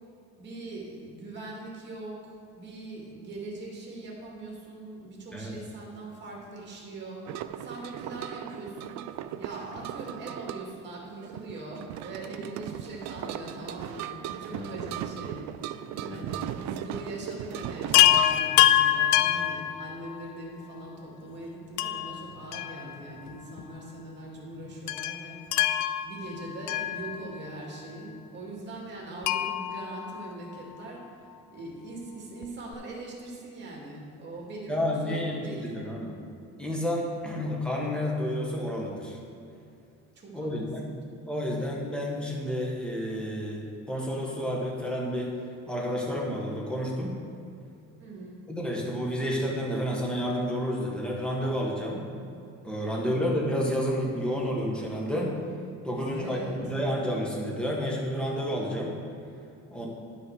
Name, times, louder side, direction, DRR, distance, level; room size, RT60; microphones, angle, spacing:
voice 1, 0.4-9.1 9.4-15.4 15.8-31.1 31.5-35.6 40.2-40.5 40.8-40.9 48.0-48.4 52.8-53.3 56.0-56.6 59.8-59.9, right 2 dB, 40° right, -2 dB, 2.3 m, -41 dB
sound 1, 7.2-18.3, right 11 dB, 70° right, 0.5 m, -38 dB
Chime, 17.9-20.4 21.8-23.3 23.6-23.7 24.9-27.6 29.2-30.9 32.4-32.5 32.7-32.8, left 12 dB, 75° left, 0.5 m, -25 dB
voice 2, 34.7-36.2 36.6-39.2 40.3-40.9 41.3-45.3 45.7-47.2 48.5-52.0 52.6-55.3 55.8-58.9 59.7-59.9, equal, 5° left, -3 dB, 1.5 m, -30 dB
10.5 x 5.6 x 4.9 m, 2.6 s
cardioid pair, 150°, 29 cm